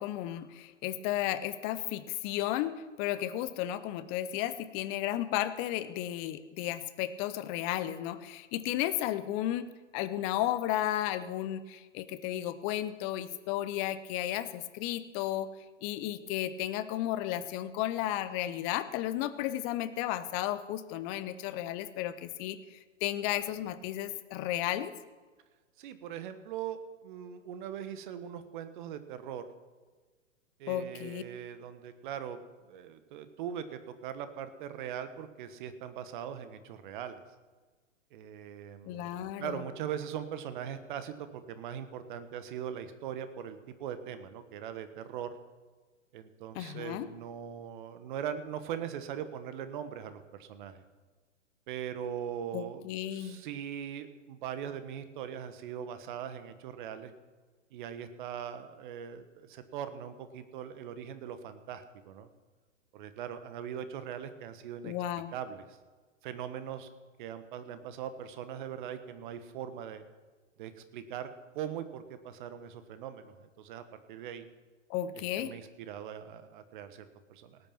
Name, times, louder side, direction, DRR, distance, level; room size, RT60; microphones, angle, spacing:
voice 1, 0.0-2.7 3.0-9.7 9.9-15.5 15.8-24.9 30.7-31.2 38.8-39.6 46.6-47.1 52.5-53.4 64.8-65.3 74.9-75.5, left 13 dB, 15° left, 13 dB, 0.4 m, -33 dB
voice 2, 25.8-29.4 30.6-37.2 38.1-45.3 46.1-50.8 51.7-57.1 57.7-62.3 62.9-64.9 65.3-65.8 66.2-66.9 67.2-70.0 70.6-71.3 71.5-74.5 75.1-77.6, right 9 dB, 40° right, 11 dB, 1.4 m, -41 dB
18.0 x 8.9 x 5.8 m, 1.3 s
figure-of-eight pair, 115°, 37 cm